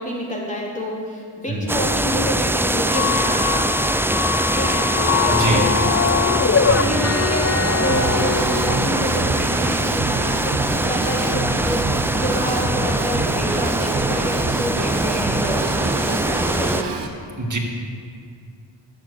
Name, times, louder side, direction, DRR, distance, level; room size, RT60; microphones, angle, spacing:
voice 1, 0.0-3.7 4.6-6.2 6.6-11.8 12.1-17.0, equal, 15° left, -3 dB, 3.5 m, -28 dB
voice 2, 1.5-1.8 5.3-5.6 6.7-6.9 17.4-17.6, right 2 dB, 40° right, 0 dB, 2.3 m, -24 dB
sound 1, 1.7-16.8, right 1 dB, 5° right, 0.3 m, -22 dB
sound 2, 2.9-8.9, left 7 dB, 30° left, 0.6 m, -22 dB
Drum kit / Drum, 7.9-17.1, right 4 dB, 70° right, 1.4 m, -28 dB
12.0 x 8.0 x 7.0 m, 2.2 s
cardioid pair, 50°, 44 cm